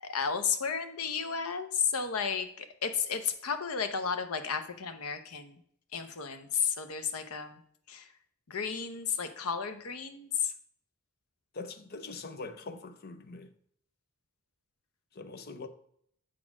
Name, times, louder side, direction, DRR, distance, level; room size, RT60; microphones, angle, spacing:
voice 1, 0.0-5.6 5.9-7.6 7.9-8.1 8.5-10.5, left 6 dB, 75° left, 0.8 m, -33 dB
voice 2, 11.5-13.5 15.2-15.7, left 3 dB, 45° left, 0.6 m, -42 dB
7.5 x 4.3 x 5.9 m
head